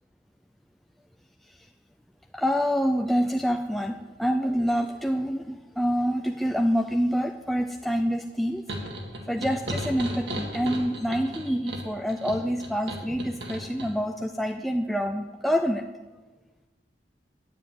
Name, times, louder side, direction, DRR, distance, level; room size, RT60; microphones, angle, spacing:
voice 1, 2.3-8.6 9.3-15.9, equal, ahead, 3 dB, 0.3 m, -26 dB
sound 1, 8.7-13.9, right 1 dB, 65° right, 1.9 m, -35 dB
9.7 x 7.0 x 9.1 m, 1.2 s
head